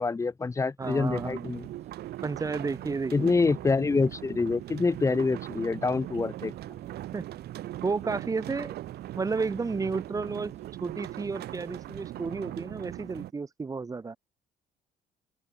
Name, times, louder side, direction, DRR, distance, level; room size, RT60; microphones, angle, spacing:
voice 1, 0.0-1.7 3.1-6.5, left 4 dB, 20° left, 0.9 m, -26 dB
voice 2, 0.8-1.6 2.2-3.3 7.1-7.2 7.8-8.7 9.2-10.5 10.8-14.2, right 4 dB, 20° right, 0.9 m, -32 dB
sound 1, 0.8-13.3, right 14 dB, 70° right, 2.7 m, -40 dB
sound 2, 1.2-12.2, right 7 dB, 40° right, 6.6 m, -55 dB
open air
cardioid pair, 110°, 17 cm